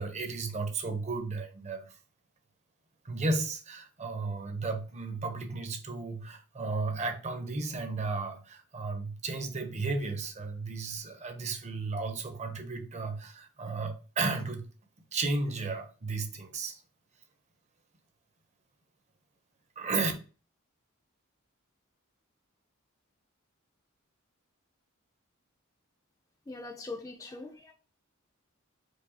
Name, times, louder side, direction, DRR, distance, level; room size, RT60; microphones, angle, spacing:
voice 1, 0.0-2.0 3.0-14.7 15.1-16.8 19.8-20.1, right 3 dB, 30° right, 0.6 m, -34 dB
voice 2, 26.5-27.7, left 3 dB, 15° left, 0.3 m, -41 dB
4.7 x 2.3 x 2.7 m
head